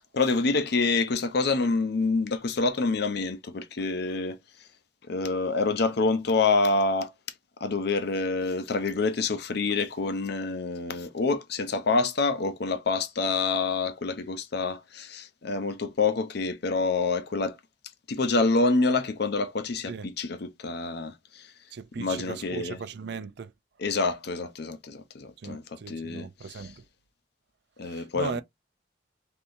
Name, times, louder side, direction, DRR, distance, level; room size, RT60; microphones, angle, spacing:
voice 1, 0.1-4.4 5.1-7.1 7.6-17.6 18.1-21.5 22.0-22.8 23.8-26.7 27.8-28.4, left 3 dB, 60° left, 0.6 m, -27 dB
voice 2, 21.7-23.5 25.4-26.8 27.8-28.4, right 5 dB, 65° right, 0.4 m, -38 dB
3.5 x 2.8 x 2.6 m
head